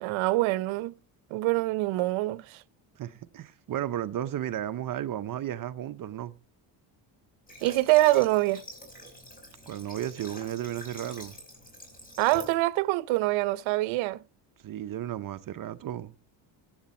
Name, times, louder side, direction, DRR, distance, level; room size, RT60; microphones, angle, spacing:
voice 1, 0.0-0.9 1.3-2.6 7.6-8.6 12.2-14.2, right 18 dB, 80° right, 0.7 m, -25 dB
voice 2, 3.0-6.3 9.7-11.4 14.6-16.1, right 11 dB, 45° right, 0.7 m, -34 dB
Water / Water tap faucet, 7.5-12.6, equal, 20° left, 5.2 m, -46 dB
14.5 x 8.2 x 4.2 m
cardioid pair, 120°, 46 cm